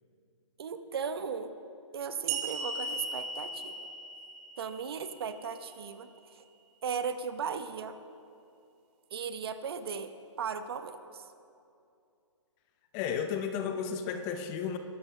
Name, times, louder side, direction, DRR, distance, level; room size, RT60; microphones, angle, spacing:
voice 1, 0.6-1.5 1.9-3.9 4.6-6.1 6.3-6.4 6.8-8.0 9.1-10.1 10.4-11.2, right 6 dB, 50° right, 10 dB, 1.0 m, -36 dB
sound 1, 2.3-5.6, right 3 dB, 20° right, 0.8 m, -37 dB
voice 2, 12.9-14.8, left 7 dB, 20° left, 7 dB, 0.6 m, -33 dB
22.0 x 12.5 x 3.3 m, 2.6 s
hypercardioid pair, 150°, 16 cm